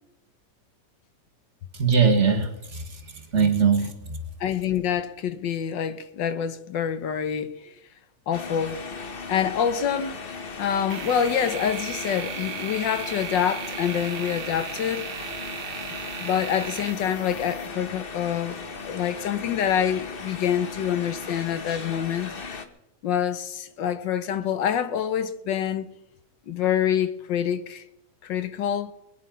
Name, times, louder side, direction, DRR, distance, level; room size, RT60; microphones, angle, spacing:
voice 1, 1.7-4.2, right 6 dB, 40° right, 2.0 m, -22 dB
voice 2, 4.4-7.7 8.3-8.8 9.3-10.2 10.6-15.1 16.2-18.6 18.8-22.3 23.0-25.9 26.5-27.8 28.2-28.9, left 9 dB, 85° left, 1.7 m, -26 dB
sound 1, 8.3-22.7, left 4 dB, 35° left, 1.1 m, -37 dB
sound 2, 10.9-17.7, right 8 dB, 70° right, 1.5 m, -37 dB
21.5 x 9.8 x 5.6 m
omnidirectional pair, 1.9 m